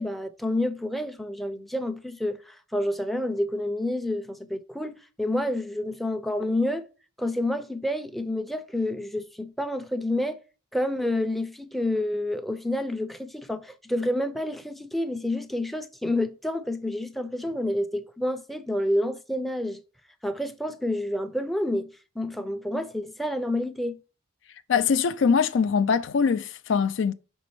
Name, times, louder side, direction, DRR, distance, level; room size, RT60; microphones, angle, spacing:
voice 1, 0.0-6.9 7.2-10.4 10.7-19.8 20.2-21.9 22.2-24.0, left 1 dB, ahead, 0.5 m, -29 dB
voice 2, 24.7-27.1, left 6 dB, 65° left, 0.4 m, -22 dB
6.0 x 5.3 x 3.1 m
head